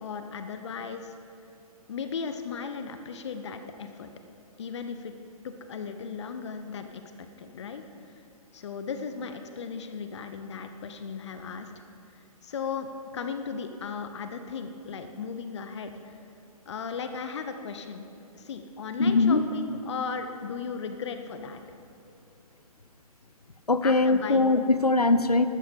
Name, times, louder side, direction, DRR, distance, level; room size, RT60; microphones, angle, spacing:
voice 1, 0.0-1.1 1.9-4.1 4.6-5.1 5.4-8.2 8.5-11.7 12.1-16.2 16.7-18.1 18.3-21.6 23.8-24.5, left 6 dB, 50° left, 8 dB, 0.8 m, -36 dB
voice 2, 19.0-19.4 23.7-25.5, left 3 dB, 85° left, 12 dB, 0.7 m, -21 dB
14.5 x 12.5 x 5.2 m, 2.8 s
figure-of-eight pair, 125°, 19 cm